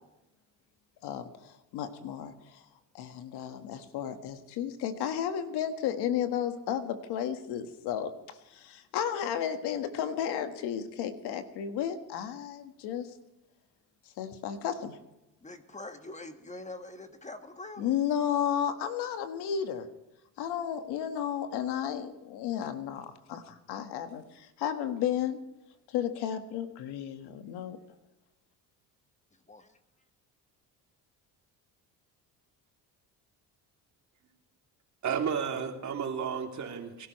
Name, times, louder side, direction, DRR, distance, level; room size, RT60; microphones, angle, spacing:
voice 1, 1.0-2.6 2.9-13.1 14.2-15.0 17.8-19.9 20.4-25.4 25.9-27.8, left 9 dB, 80° left, 1.6 m, -33 dB
voice 2, 15.4-17.9 29.5-29.8, left 2 dB, 20° left, 1.5 m, -44 dB
voice 3, 35.0-37.1, right 7 dB, 45° right, 2.9 m, -32 dB
23.5 x 12.5 x 3.2 m
cardioid pair, 100°, 39 cm